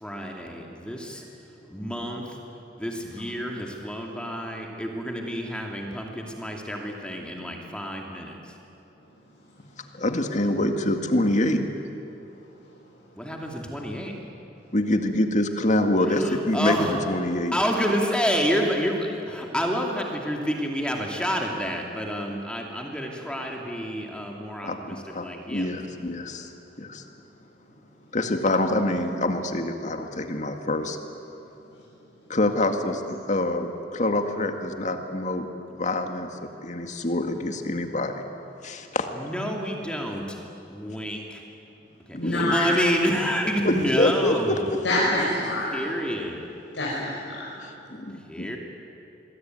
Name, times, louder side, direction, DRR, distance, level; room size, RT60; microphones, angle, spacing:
voice 1, 0.0-1.2 1.7-2.4 2.8-8.4 13.2-14.1 16.1-17.0 17.5-25.7 39.1-40.4 40.7-41.4 42.1-44.6 45.6-46.4 48.3-48.6, equal, 5° left, 1 dB, 2.6 m, -29 dB
voice 2, 9.9-11.9 14.7-16.8 17.1-17.6 24.6-26.5 26.8-27.0 28.1-31.0 32.3-36.3 36.6-38.2 38.6-39.1 42.1-42.5 43.6-45.0 47.9-48.6, left 1 dB, 45° left, 6 dB, 2.1 m, -26 dB
voice 3, 42.2-42.7 44.8-45.8 46.7-47.5, left 1 dB, 90° left, -7 dB, 6.2 m, -26 dB
27.0 x 21.5 x 9.4 m, 2.8 s
head